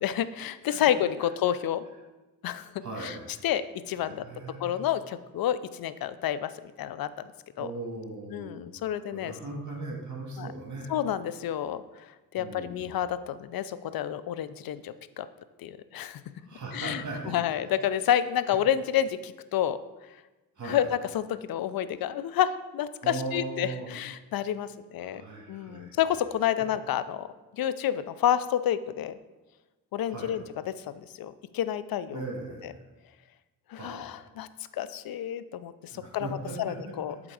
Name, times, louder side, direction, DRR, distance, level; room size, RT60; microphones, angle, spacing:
voice 1, 0.0-1.8 2.4-2.7 3.0-3.1 3.4-4.2 4.6-6.5 6.8-7.3 7.6-7.7 8.3-9.3 10.4-10.5 10.9-15.3 15.6-16.2 16.7-19.8 20.6-25.2 25.5-27.3 27.5-29.2 29.9-30.4 30.8-32.2 33.7-34.5 34.7-36.3 36.6-37.1, left 10 dB, 65° left, 14 dB, 0.5 m, -29 dB
voice 2, 2.8-3.4 4.0-4.8 7.6-10.9 12.4-13.0 16.4-17.4 20.6-20.9 23.0-23.9 25.0-26.0 30.1-30.3 32.1-32.8 33.7-34.1 35.9-36.9, right 2 dB, 45° right, -1 dB, 2.1 m, -39 dB
7.9 x 3.7 x 4.8 m, 1.1 s
cardioid pair, 65°, 39 cm